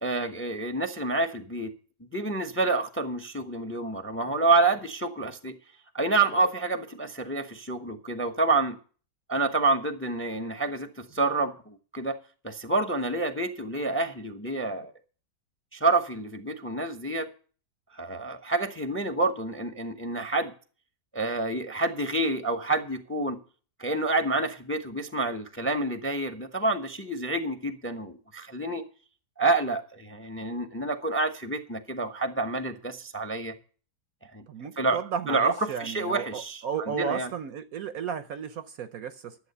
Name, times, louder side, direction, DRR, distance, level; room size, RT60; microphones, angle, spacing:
voice 1, 0.0-1.7 2.1-5.5 5.9-8.7 9.3-12.2 12.4-14.9 15.7-17.3 17.9-20.5 21.1-23.4 23.8-28.8 29.4-33.5 34.3-34.4 34.8-35.0 35.3-35.5 35.8-36.6 36.9-37.3, right 3 dB, 10° left, 0.7 m, -28 dB
voice 2, 34.5-39.4, right 7 dB, 60° right, 1.0 m, -34 dB
11.5 x 7.8 x 6.7 m
omnidirectional pair, 1.9 m